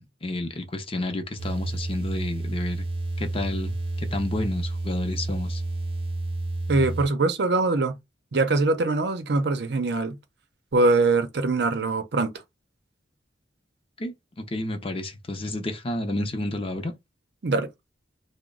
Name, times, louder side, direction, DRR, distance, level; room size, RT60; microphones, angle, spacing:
voice 1, 0.0-2.8 3.2-5.6 14.0-16.9, left 1 dB, 30° left, 0.6 m, -31 dB
sound 1, 1.4-7.1, right 2 dB, 30° right, 0.7 m, -30 dB
voice 2, 6.7-8.0 8.3-10.2 10.7-12.3 17.4-17.7, right 3 dB, 70° right, 0.6 m, -23 dB
3.0 x 2.1 x 3.7 m
head